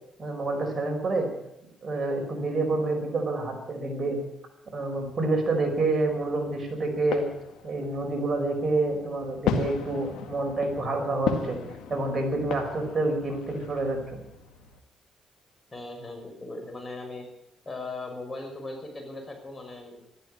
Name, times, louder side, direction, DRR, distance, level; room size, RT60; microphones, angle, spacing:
voice 1, 0.2-1.3 1.8-4.2 4.7-7.3 7.6-11.6 11.9-14.0, right 2 dB, 35° right, 2 dB, 5.2 m, -28 dB
sound 1, 5.0-14.8, left 6 dB, 90° left, 2.0 m, -36 dB
voice 2, 15.7-17.3 17.7-20.0, left 2 dB, 25° left, 3 dB, 5.7 m, -38 dB
14.0 x 12.5 x 8.4 m, 0.84 s
cardioid pair, 90°, 0 cm